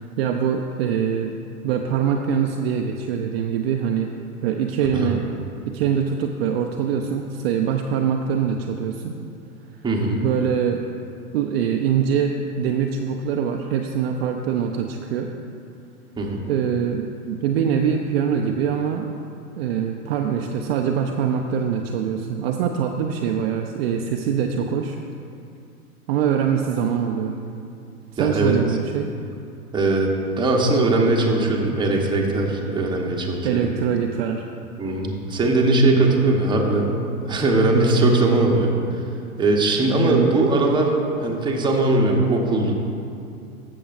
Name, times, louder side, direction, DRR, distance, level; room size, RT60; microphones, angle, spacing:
voice 1, 0.2-1.3 1.6-4.1 4.4-5.2 5.7-9.2 10.2-10.8 11.3-15.3 16.5-19.1 19.6-25.0 26.1-27.4 28.2-29.1 33.4-34.4 40.0-40.3, right 7 dB, 45° right, 3 dB, 0.5 m, -23 dB
voice 2, 9.8-10.2 16.2-16.4 28.2-28.5 29.7-30.1 30.4-33.8 34.8-36.9 37.3-38.7 39.4-42.7, right 2 dB, 10° right, -1 dB, 1.0 m, -20 dB
14.5 x 6.9 x 2.5 m, 2.5 s
hypercardioid pair, 110°, 45 cm